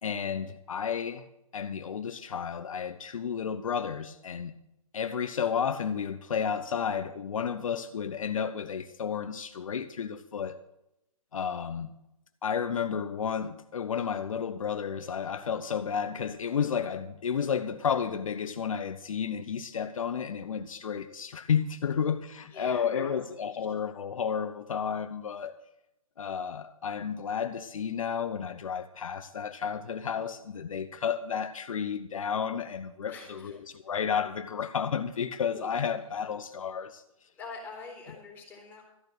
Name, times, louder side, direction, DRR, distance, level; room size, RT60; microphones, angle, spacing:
voice 1, 0.0-1.2 1.5-4.5 4.9-10.6 11.3-11.9 12.4-25.6 26.2-33.5 33.9-37.0, left 7 dB, 70° left, 0.8 m, -32 dB
voice 2, 22.5-23.6 33.1-33.8 37.3-38.8, left 4 dB, 10° left, 4.2 m, -45 dB
14.0 x 6.6 x 8.2 m
hypercardioid pair, 150°, 18 cm